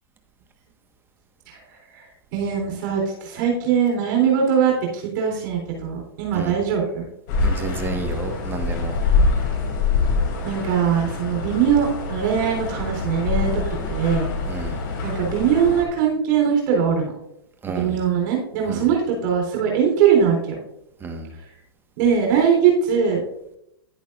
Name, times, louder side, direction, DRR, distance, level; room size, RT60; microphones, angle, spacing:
voice 1, 2.3-7.1 10.4-13.6 13.9-14.3 15.0-17.1 17.7-20.6 22.0-23.2, right 7 dB, 55° right, 0 dB, 3.9 m, -21 dB
sound 1, 7.3-15.8, left 4 dB, 55° left, 2.9 m, -25 dB
voice 2, 7.4-9.0 14.5-14.8 17.6-18.0 18.7-18.9 21.0-21.3, right 4 dB, 15° right, 4 dB, 1.5 m, -31 dB
11.0 x 10.5 x 2.6 m, 0.79 s
hypercardioid pair, 115°, 13 cm